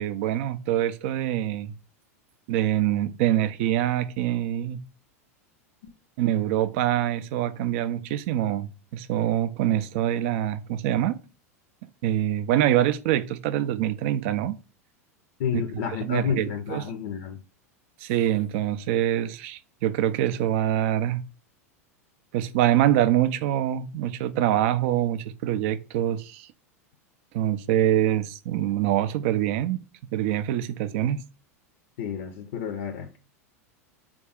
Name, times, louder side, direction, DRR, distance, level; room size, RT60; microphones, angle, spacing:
voice 1, 0.0-1.7 2.5-4.8 6.2-11.2 12.0-14.6 15.5-15.6 16.1-16.9 18.0-21.2 22.3-26.5 27.3-29.8 30.1-31.2, right 12 dB, 55° right, 0.3 m, -25 dB
voice 2, 15.4-17.4 32.0-33.2, left 7 dB, 60° left, 0.4 m, -30 dB
3.4 x 2.4 x 3.4 m
hypercardioid pair, 90°, 8 cm